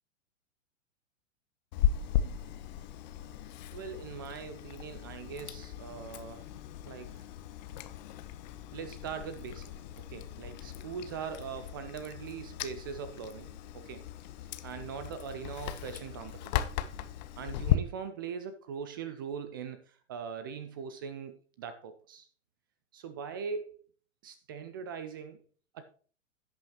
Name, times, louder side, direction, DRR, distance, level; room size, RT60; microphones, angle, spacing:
Chewing mastication, 1.7-17.8, left 11 dB, 35° left, 0.6 m, -36 dB
voice 1, 3.7-6.5 6.9-7.2 8.7-14.0 14.6-16.6 17.4-22.3 22.9-23.8 24.2-25.4 25.7-25.8, right 6 dB, 20° right, 11 dB, 0.3 m, -41 dB
16.5 x 5.6 x 2.9 m, 0.41 s
figure-of-eight pair, 105°, 38 cm